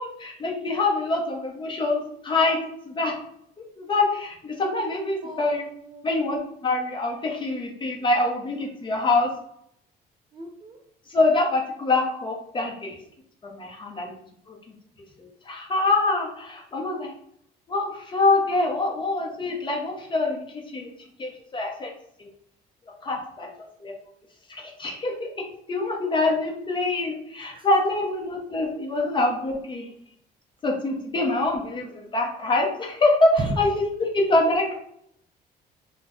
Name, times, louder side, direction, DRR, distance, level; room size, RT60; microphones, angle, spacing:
voice 1, 0.0-2.6 2.8-3.2 3.6-5.7 6.0-9.3 11.1-13.0 13.5-14.1 14.5-14.6 15.2-17.1 17.7-20.4 20.7-20.9 21.2-21.9 22.2-22.3 23.0-23.5 23.8-23.9 24.5-25.3 25.7-29.9 30.6-33.3 33.6-34.7, left 2 dB, 30° left, 1 dB, 0.7 m, -25 dB
voice 2, 5.2-6.1 10.3-10.8 27.4-27.7 33.4-33.6, right 2 dB, 30° right, 3 dB, 0.4 m, -34 dB
2.4 x 2.1 x 3.5 m, 0.70 s
cardioid pair, 110°, 17 cm